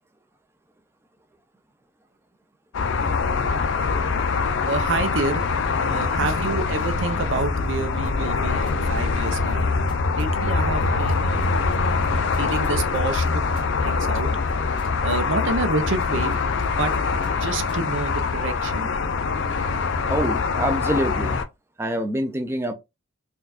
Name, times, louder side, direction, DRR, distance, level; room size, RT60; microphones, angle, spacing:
sound 1, 2.7-21.4, left 4 dB, 65° left, 0.4 m, -24 dB
voice 1, 4.6-9.7 10.1-11.5 12.4-14.3 15.0-16.4 16.8-16.9 17.3-18.9, right 3 dB, 70° right, 0.6 m, -28 dB
sound 2, 8.0-17.8, equal, 25° left, 0.7 m, -37 dB
voice 2, 20.1-21.4 21.8-22.7, equal, 10° right, 0.4 m, -25 dB
4.4 x 2.3 x 2.4 m
head